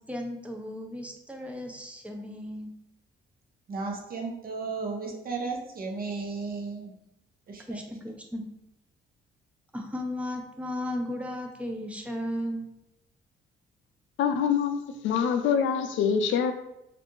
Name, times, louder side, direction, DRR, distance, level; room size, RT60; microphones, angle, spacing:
voice 1, 0.1-2.7 7.7-8.4 9.7-12.7, left 1 dB, 5° right, 2 dB, 0.6 m, -35 dB
voice 2, 3.7-6.9 7.5-7.8, right 4 dB, 50° right, 1 dB, 0.7 m, -34 dB
voice 3, 14.2-16.5, left 7 dB, 75° left, 8 dB, 0.4 m, -25 dB
3.2 x 2.5 x 3.0 m, 0.86 s
cardioid pair, 90°, 20 cm